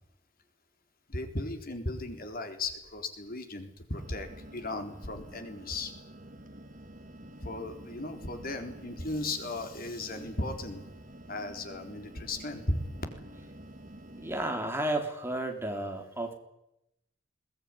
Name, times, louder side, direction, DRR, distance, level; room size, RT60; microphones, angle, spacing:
voice 1, 1.1-5.9 7.4-10.8 11.3-12.8, left 2 dB, 50° left, 6 dB, 3.8 m, -36 dB
sound 1, 3.9-14.5, right 1 dB, 45° right, 2.3 m, -49 dB
voice 2, 14.1-16.3, right 1 dB, 10° right, 3 dB, 3.7 m, -32 dB
22.0 x 19.5 x 9.9 m, 0.82 s
head